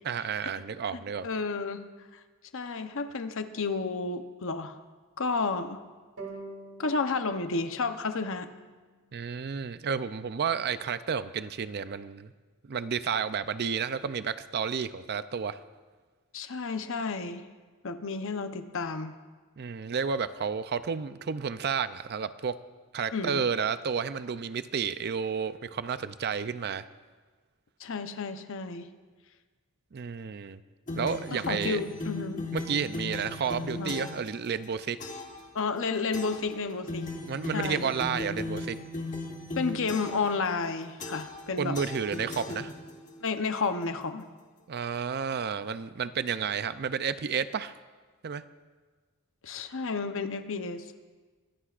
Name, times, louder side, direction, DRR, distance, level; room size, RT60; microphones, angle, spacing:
voice 1, 0.0-1.3 9.1-12.3 12.7-15.6 19.6-22.6 22.9-26.8 29.9-30.6 31.0-31.8 32.5-35.0 37.3-38.8 41.6-42.7 44.7-47.7 48.2-48.4, right 6 dB, 45° right, 13 dB, 0.5 m, -31 dB
voice 2, 0.9-1.9 2.5-4.8 5.2-5.8 6.8-8.5 16.3-17.5 17.8-19.2 23.1-23.4 27.8-28.9 31.3-32.5 33.8-33.9 35.5-37.1 37.5-37.9 39.5-41.8 43.2-44.2 49.4-51.0, left 4 dB, 60° left, 8 dB, 0.8 m, -31 dB
sound 1, 6.2-9.4, right 2 dB, 70° right, 2.8 m, -47 dB
sound 2, 30.9-34.3 35.0-35.4 36.1-36.5 36.9-40.3 41.0-41.4 41.7-43.1, left 2 dB, 35° left, 1.3 m, -37 dB
23.0 x 17.0 x 2.5 m, 1.4 s
head